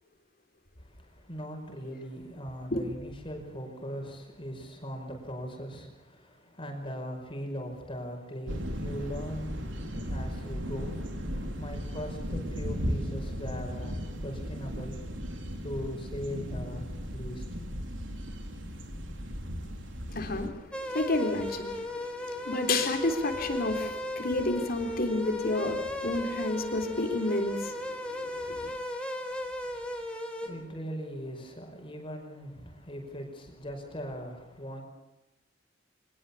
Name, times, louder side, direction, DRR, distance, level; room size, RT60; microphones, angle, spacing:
voice 1, 0.8-15.0 15.6-17.4 29.0-34.8, equal, 30° left, 5.2 m, -40 dB
sound 1, 8.5-20.5, equal, 85° right, 3.8 m, -36 dB
voice 2, 20.1-28.8, left 2 dB, 55° left, 3.6 m, -31 dB
sound 2, 20.7-30.5, left 1 dB, 5° left, 4.1 m, -36 dB
24.5 x 19.5 x 7.1 m
head